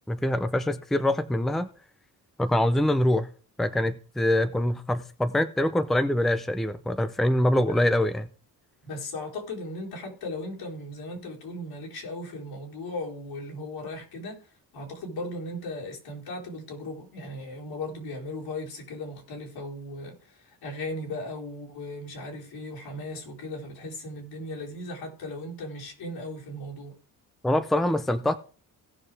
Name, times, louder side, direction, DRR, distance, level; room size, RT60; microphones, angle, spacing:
voice 1, 0.1-1.7 2.4-3.3 3.6-8.3 27.4-28.4, left 1 dB, ahead, 0.5 m, -24 dB
voice 2, 8.8-14.4 14.7-26.9, left 1 dB, 85° left, 4.3 m, -37 dB
17.5 x 6.5 x 3.4 m
cardioid pair, 175°, 37 cm